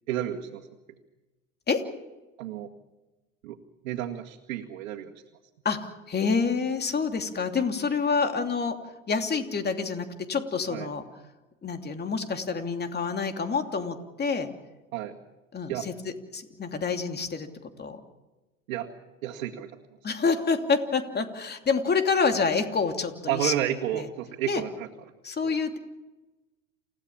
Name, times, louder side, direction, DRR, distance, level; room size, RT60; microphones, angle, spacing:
voice 1, 0.1-0.7 2.4-2.7 3.4-3.6 3.8-5.1 10.7-10.9 14.9-15.2 15.7-15.9 18.7-18.9 19.2-19.7 23.3-24.9 25.4-25.5, right 12 dB, 70° right, -1 dB, 2.1 m, -31 dB
voice 2, 5.6-8.8 9.1-11.1 11.6-14.5 15.5-15.9 16.3-17.5 17.8-18.0 20.0-23.5 23.9-24.1 24.5-24.6 25.2-25.8, left 5 dB, 25° left, 6 dB, 2.8 m, -27 dB
29.0 x 16.5 x 7.3 m, 1.1 s
hypercardioid pair, 85°, 40 cm